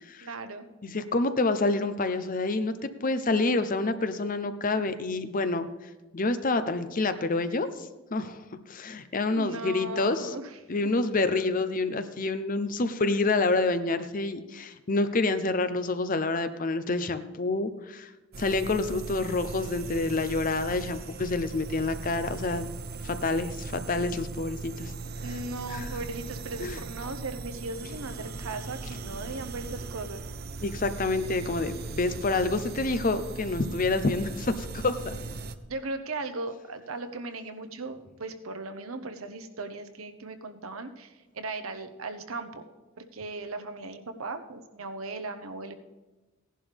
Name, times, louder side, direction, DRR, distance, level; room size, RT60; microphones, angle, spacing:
voice 1, 0.2-0.7 9.2-10.6 25.2-30.2 35.7-42.6 43.0-45.7, right 3 dB, 85° right, 8 dB, 1.0 m, -37 dB
voice 2, 0.8-2.7 3.0-5.7 6.1-10.3 10.7-18.1 18.4-22.7 23.0-24.9 25.7-25.9 26.6-26.8 30.6-35.2, left 3 dB, 40° left, 10 dB, 0.7 m, -28 dB
sound 1, 18.3-35.6, right 3 dB, 50° right, 0.6 m, -39 dB
16.0 x 11.0 x 3.5 m, 1.2 s
head